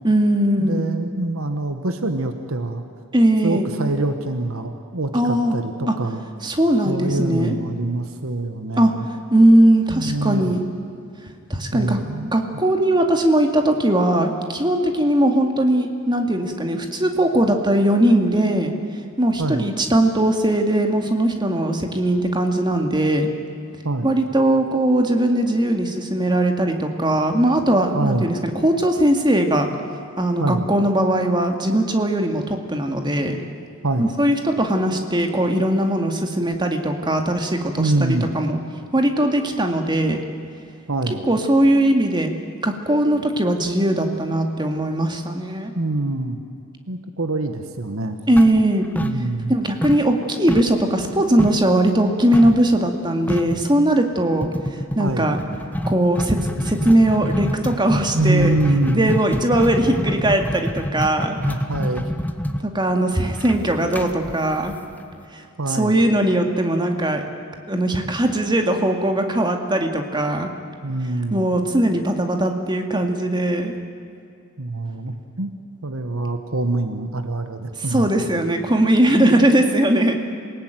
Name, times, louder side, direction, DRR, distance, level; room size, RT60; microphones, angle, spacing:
voice 1, 0.0-0.9 3.1-3.7 5.1-5.5 5.9-6.0 6.4-7.6 8.8-8.9 9.3-10.6 11.5-12.0 12.3-18.7 19.2-23.3 24.0-29.7 30.2-33.4 34.0-38.6 38.9-40.2 41.3-42.3 42.6-45.7 48.3-48.9 49.5-54.5 55.0-55.4 55.9-56.4 56.6-58.5 58.9-61.4 62.6-64.7 65.7-67.2 67.7-70.5 71.3-73.7 77.9-80.2, right 1 dB, 20° right, 4 dB, 2.2 m, -19 dB
voice 2, 0.6-2.9 3.4-6.2 6.8-9.1 9.9-10.6 11.7-12.6 19.4-19.7 23.8-24.2 27.9-28.3 30.4-30.7 33.8-34.1 37.8-38.3 40.9-41.3 45.7-46.4 46.9-48.2 49.0-49.6 55.0-55.3 58.1-59.2 61.3-62.1 65.6-66.0 70.8-71.5 74.6-75.5 75.8-78.2, right 2 dB, 70° right, 7 dB, 1.4 m, -24 dB
sound 1, 48.4-49.5 49.8-51.7 52.3-52.6 52.9-53.0 53.3-53.6 54.4-65.2, equal, 10° left, 1.1 m, -27 dB
27.0 x 18.5 x 9.2 m, 2.5 s
head